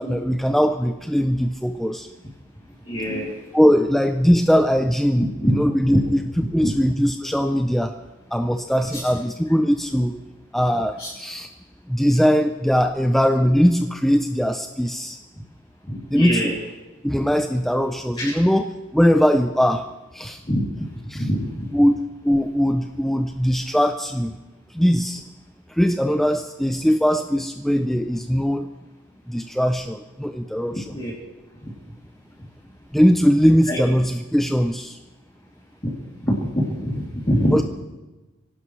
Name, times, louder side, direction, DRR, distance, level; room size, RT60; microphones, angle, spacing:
voice 1, 0.0-2.1 3.5-6.2 6.5-8.0 8.3-10.2 10.5-11.5 11.9-15.2 16.1-16.4 17.0-18.7 18.9-19.9 20.1-20.4 21.1-21.3 21.7-22.0 22.2-24.3 24.7-25.2 25.7-28.7 29.3-30.8 32.9-35.0 37.5-37.6, equal, ahead, 6 dB, 0.5 m, -20 dB
voice 2, 2.8-3.3 5.2-5.6 5.9-6.0 6.6-6.7 8.9-9.0 11.0-11.1 15.9-16.5 18.2-18.3 20.4-20.9 21.1-21.7 30.9-31.1 31.6-31.7 33.7-33.8 35.8-35.9 36.2-37.6, equal, 25° left, -7 dB, 2.8 m, -24 dB
25.0 x 17.0 x 3.2 m, 1.1 s
head